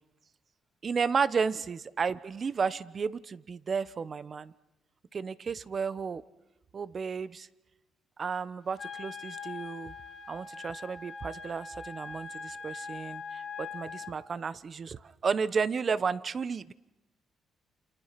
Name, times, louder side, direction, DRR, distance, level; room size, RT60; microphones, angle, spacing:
voice 1, 0.8-4.5 5.1-6.2 6.7-7.5 8.2-9.9 10.3-16.7, right 5 dB, 45° right, 17 dB, 1.0 m, -32 dB
Wind instrument woodwind instrument, 8.8-14.2, left 5 dB, 50° left, 2.5 m, -42 dB
29.0 x 27.5 x 5.9 m, 1.0 s
cardioid pair, 90°, 0 cm